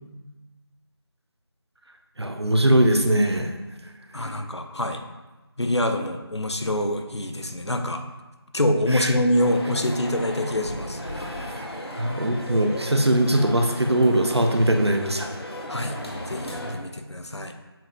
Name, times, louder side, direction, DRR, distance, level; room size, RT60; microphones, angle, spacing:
voice 1, 2.2-3.5 8.9-9.1 11.2-11.5 11.9-15.3, right 1 dB, 75° right, 4 dB, 1.1 m, -21 dB
voice 2, 4.1-5.0 5.6-8.0 8.5-11.0 15.7-16.0 16.3-17.5, left 1 dB, 85° left, 6 dB, 1.1 m, -25 dB
sound 1, 9.4-16.7, left 1 dB, 70° left, 1.9 m, -35 dB
7.4 x 5.1 x 3.6 m, 1.1 s
figure-of-eight pair, 170°, 14 cm